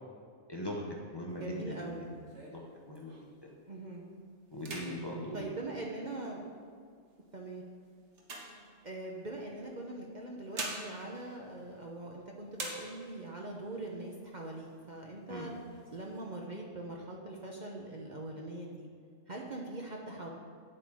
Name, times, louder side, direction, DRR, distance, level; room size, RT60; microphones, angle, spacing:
voice 1, 0.5-0.8 1.1-2.1 2.5-2.6 2.9-3.5 4.5-5.5 15.3-15.5, equal, 20° left, -2 dB, 1.0 m, -40 dB
sound 1, 1.3-3.5 3.9-4.2 4.5-6.4 7.1-9.3 10.1-12.2 12.5-13.4 13.8-13.9 14.2-14.9 15.3-16.2, right 2 dB, 65° right, 1.7 m, -45 dB
voice 2, 1.4-2.0 3.7-4.0 5.3-6.4 7.3-7.6 8.8-15.5 15.9-18.9 19.3-20.3, right 2 dB, 40° right, -1 dB, 0.9 m, -42 dB
9.1 x 7.7 x 4.9 m, 2.2 s
omnidirectional pair, 1.3 m